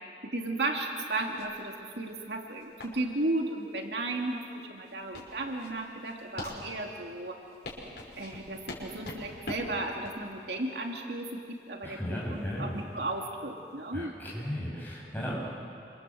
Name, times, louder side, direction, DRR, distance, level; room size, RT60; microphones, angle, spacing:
voice 1, 0.0-7.4 8.2-14.1, right 2 dB, 70° right, 1 dB, 2.6 m, -34 dB
sound 1, 1.2-13.9, left 1 dB, 80° left, 5.7 m, -45 dB
voice 2, 11.8-12.7 13.9-15.3, equal, 10° left, -5 dB, 7.8 m, -35 dB
27.5 x 26.5 x 7.8 m, 2.6 s
head